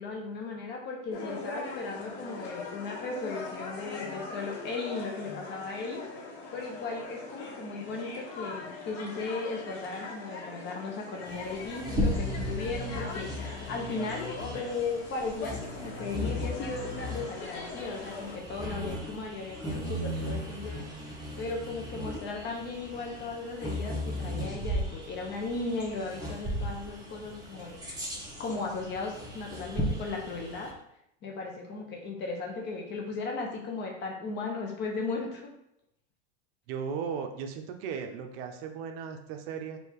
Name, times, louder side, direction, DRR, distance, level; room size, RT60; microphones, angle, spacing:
voice 1, 0.0-6.0 6.5-20.8 21.4-27.8 28.4-30.7 31.2-35.5, left 3 dB, 30° left, 0 dB, 0.7 m, -36 dB
sound 1, 1.1-18.4, left 3 dB, 60° left, 1.4 m, -41 dB
Bird vocalization bird call bird song, 11.2-30.7, equal, 10° right, 1.1 m, -36 dB
voice 2, 36.7-39.8, right 6 dB, 55° right, 5 dB, 0.7 m, -36 dB
3.3 x 2.7 x 4.6 m, 0.78 s
supercardioid pair, 135°, 35 cm